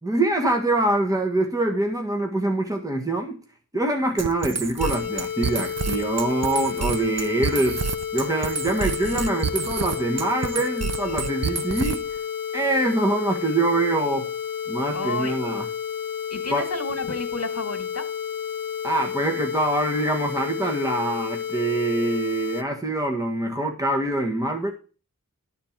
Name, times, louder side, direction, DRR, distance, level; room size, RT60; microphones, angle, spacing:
voice 1, 0.0-3.4 3.7-7.8 8.1-12.2 12.5-14.3 14.7-15.6 16.5-16.7 18.8-24.7, right 2 dB, 10° right, 1.6 m, -24 dB
sound 1, 4.2-12.2, right 6 dB, 50° right, 0.6 m, -29 dB
sound 2, 4.8-22.6, left 8 dB, 80° left, 0.6 m, -31 dB
voice 2, 14.9-15.4 16.3-18.1, left 2 dB, 45° left, 1.9 m, -31 dB
11.5 x 4.4 x 7.4 m
wide cardioid pair, 45°, 33 cm